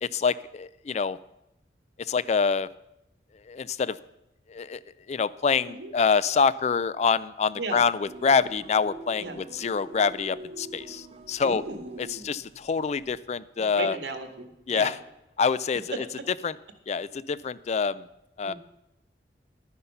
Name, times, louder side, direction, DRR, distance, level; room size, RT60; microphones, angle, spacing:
voice 1, 0.0-1.2 2.0-2.7 3.5-4.0 4.5-4.8 5.1-11.6 12.0-14.0 14.7-15.0 15.4-16.1 16.4-16.5 16.9-18.1 18.4-18.5, left 5 dB, 40° left, 17 dB, 0.4 m, -26 dB
sound 1, 8.1-13.2, right 2 dB, 35° right, 0.8 m, -45 dB
voice 2, 11.4-12.3 13.6-14.9 18.4-18.5, right 2 dB, 80° right, 6 dB, 1.7 m, -36 dB
12.0 x 9.7 x 5.6 m, 0.87 s
head